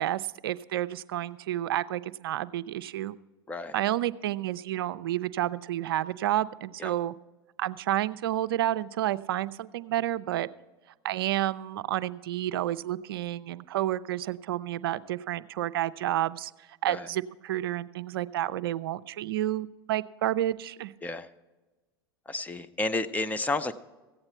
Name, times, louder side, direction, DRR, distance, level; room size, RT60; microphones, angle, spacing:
voice 1, 0.0-3.2 3.7-7.1 7.6-10.5 11.0-16.5 16.8-20.9, right 13 dB, 70° right, 15 dB, 0.4 m, -30 dB
voice 2, 22.3-23.7, left 2 dB, 10° left, 11 dB, 0.6 m, -31 dB
15.0 x 8.8 x 4.4 m, 1.2 s
hypercardioid pair, 90°, 13 cm